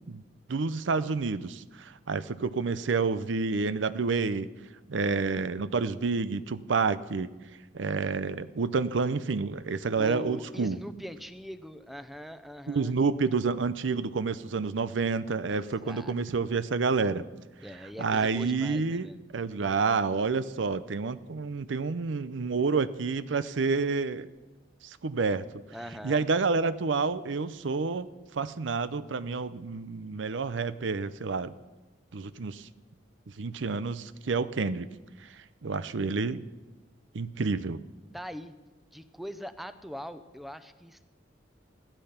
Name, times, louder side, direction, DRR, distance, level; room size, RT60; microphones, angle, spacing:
voice 1, 0.5-4.5 4.9-7.3 7.7-10.8 12.7-17.2 18.0-24.3 24.8-25.5 26.0-28.1 28.3-31.5 32.1-32.7 33.4-34.9 35.6-36.4 37.1-37.8, right 4 dB, 85° right, 14 dB, 0.6 m, -29 dB
voice 2, 10.0-13.0 15.5-16.4 17.6-19.2 25.7-26.3 38.1-38.5 38.9-41.0, equal, ahead, 10 dB, 0.7 m, -42 dB
15.5 x 12.0 x 5.7 m, 1.1 s
head